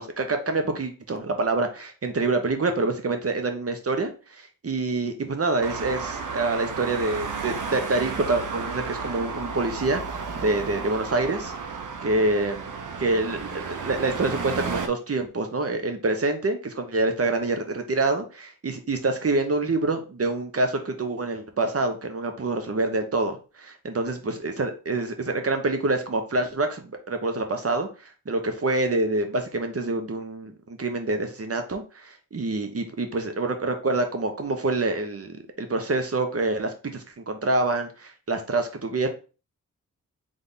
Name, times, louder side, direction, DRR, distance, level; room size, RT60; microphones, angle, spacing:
voice 1, 0.0-11.5 12.0-12.7 13.0-39.1, right 2 dB, 45° right, 6 dB, 1.0 m, -26 dB
Traffic noise roadway noise, 5.6-14.9, right 5 dB, 70° right, 0.8 m, -33 dB
3.5 x 3.4 x 4.0 m, 0.34 s
cardioid pair, 60°, 32 cm